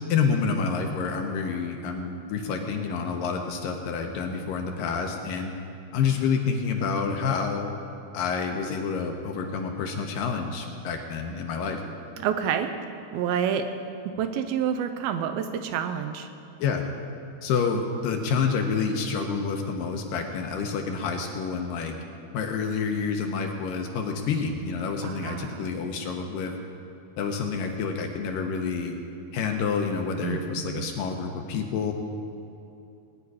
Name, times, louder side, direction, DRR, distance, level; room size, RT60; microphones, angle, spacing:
voice 1, 0.1-5.5 5.9-7.8 8.1-11.8 16.6-16.8 17.4-21.9 22.3-26.5 27.2-29.0 29.3-31.9, left 5 dB, 75° left, 3 dB, 2.3 m, -28 dB
voice 2, 12.2-12.7 13.1-13.7 14.1-16.3 25.0-25.7 30.2-30.9, right 8 dB, 80° right, 7 dB, 2.3 m, -28 dB
19.0 x 9.8 x 4.8 m, 2.7 s
omnidirectional pair, 4.5 m